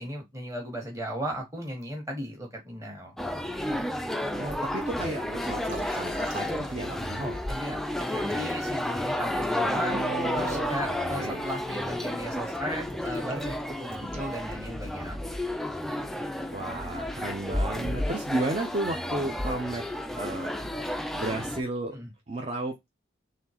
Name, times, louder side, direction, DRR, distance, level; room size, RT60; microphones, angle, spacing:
voice 1, 0.0-3.2 7.2-10.0 10.3-15.5 21.9-22.1, equal, 15° right, 1.6 m, -36 dB
sound 1, 3.2-21.6, left 1 dB, ahead, 0.3 m, -31 dB
voice 2, 4.3-7.4 9.6-11.4 16.5-19.8 20.2-20.5 21.1-22.0 22.3-22.7, right 2 dB, 35° right, 0.7 m, -33 dB
Liquid, 5.6-7.6 8.0-15.0, right 4 dB, 90° right, 1.7 m, -49 dB
4.2 x 3.2 x 2.9 m
head